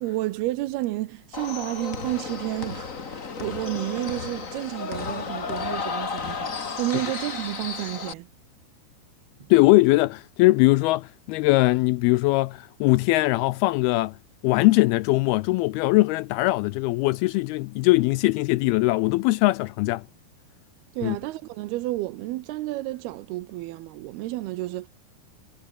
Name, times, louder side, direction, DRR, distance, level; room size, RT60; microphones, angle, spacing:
voice 1, 0.0-6.5 6.8-8.3 9.4-9.5 20.9-24.9, right 17 dB, 80° right, 2.7 m, -31 dB
sound 1, 1.3-8.1, left 5 dB, 55° left, 0.9 m, -33 dB
voice 2, 9.5-14.1 14.4-20.0 21.0-21.2, left 20 dB, 80° left, 2.3 m, -21 dB
omnidirectional pair, 4.8 m